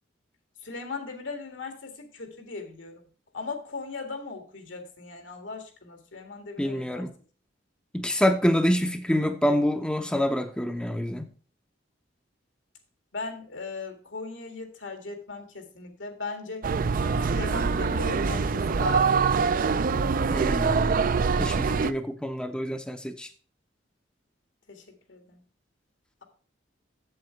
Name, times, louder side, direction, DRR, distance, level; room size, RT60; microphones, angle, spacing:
voice 1, 0.6-3.0 3.3-7.1 13.1-16.7 17.3-19.4 24.7-25.4, left 4 dB, 80° left, 5 dB, 1.9 m, -38 dB
voice 2, 6.6-7.1 7.9-11.3 20.3-20.9 21.4-23.3, equal, 5° left, 7 dB, 0.6 m, -26 dB
sound 1, 16.6-21.9, right 5 dB, 45° right, 0.4 m, -24 dB
7.7 x 7.6 x 4.5 m, 0.40 s
head